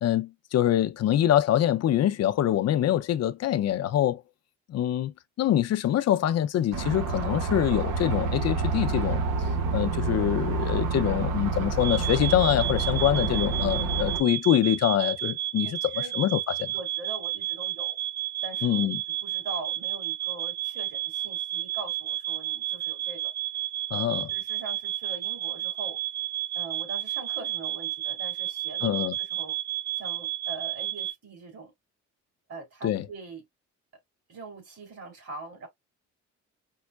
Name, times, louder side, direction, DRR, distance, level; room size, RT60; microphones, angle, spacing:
voice 1, 0.0-4.2 4.7-5.1 5.4-9.2 9.7-16.7 18.6-19.0 23.9-24.3 28.8-29.1 32.8-33.0, left 11 dB, 60° left, 0.5 m, -25 dB
sound 1, 6.7-14.2, right 3 dB, 85° right, 0.9 m, -28 dB
sound 2, 11.8-31.1, right 14 dB, 30° right, 0.8 m, -32 dB
voice 2, 15.6-16.1 16.7-18.0 18.4-18.9 19.2-23.3 24.0-26.0 26.5-29.5 30.0-31.7 32.5-33.4 34.3-35.7, right 3 dB, 55° right, 3.0 m, -42 dB
5.3 x 2.1 x 2.3 m
cardioid pair, 90°, 30 cm